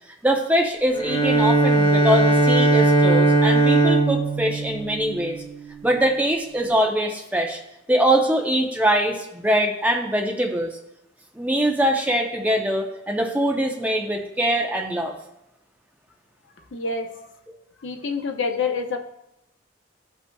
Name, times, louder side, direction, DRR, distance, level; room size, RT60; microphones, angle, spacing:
voice 1, 0.2-5.4 5.8-7.6 7.9-10.7 11.4-15.1, right 1 dB, 10° right, 1 dB, 0.7 m, -22 dB
Bowed string instrument, 1.0-5.9, right 2 dB, 90° left, 1.5 m, -19 dB
voice 2, 16.7-17.1 17.8-19.0, left 4 dB, 70° left, 4 dB, 0.7 m, -26 dB
14.0 x 5.4 x 2.3 m, 0.85 s
head